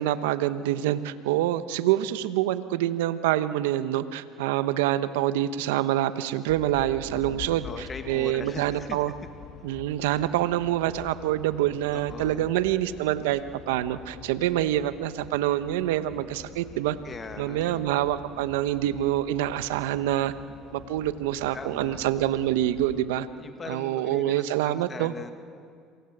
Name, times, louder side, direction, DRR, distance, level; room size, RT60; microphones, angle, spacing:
voice 1, 0.0-9.1 9.6-17.0 17.4-20.3 20.7-23.3 23.7-25.1, right 13 dB, 85° right, 12 dB, 1.0 m, -26 dB
sound 1, 6.5-23.0, left 7 dB, 60° left, 2.6 m, -46 dB
voice 2, 7.6-9.0 11.9-12.5 17.0-17.9 21.5-22.0 23.4-25.3, left 5 dB, 30° left, 8 dB, 1.6 m, -40 dB
27.0 x 23.5 x 8.0 m, 2.2 s
supercardioid pair, 85°, 0 cm